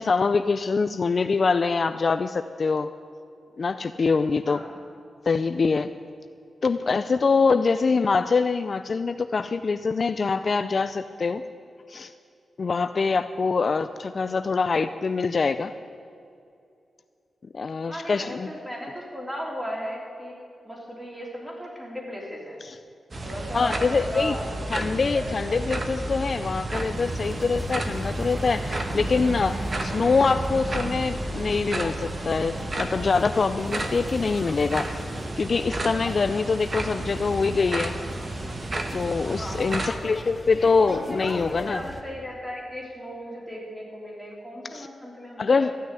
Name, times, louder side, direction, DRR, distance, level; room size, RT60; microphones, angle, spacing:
voice 1, 0.0-2.9 3.6-4.6 5.3-5.9 6.6-11.4 11.9-12.1 12.6-15.7 17.5-18.5 22.6-22.8 23.5-24.4 24.7-34.9 35.4-38.0 38.9-41.8 44.7-44.9 45.4-45.7, left 4 dB, 50° left, 11 dB, 0.4 m, -24 dB
voice 2, 17.8-20.3 20.7-22.6 23.2-24.5 25.1-25.7 39.3-40.0 40.8-45.7, equal, 5° right, -3 dB, 3.6 m, -36 dB
sound 1, 23.1-40.0, right 2 dB, 35° right, 1.2 m, -32 dB
sound 2, 26.7-42.0, left 1 dB, 15° left, 1.2 m, -40 dB
14.5 x 6.5 x 9.8 m, 2.5 s
wide cardioid pair, 95°, 0 cm